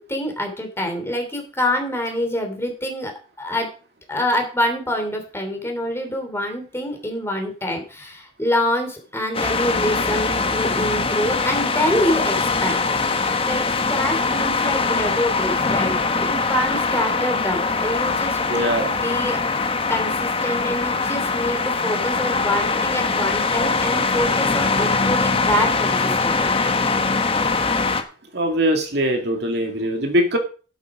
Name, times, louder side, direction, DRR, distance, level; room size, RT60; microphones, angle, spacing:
voice 1, 0.0-3.1 3.4-3.7 4.1-12.8 13.1-13.6 13.9-19.4 19.9-26.5, left 1 dB, 15° left, 4 dB, 3.2 m, -26 dB
sound 1, 9.3-28.0, left 4 dB, 30° left, 1.3 m, -22 dB
voice 2, 18.5-18.9 28.3-30.4, equal, 60° right, 3 dB, 2.3 m, -21 dB
11.5 x 8.5 x 5.0 m, 0.37 s
head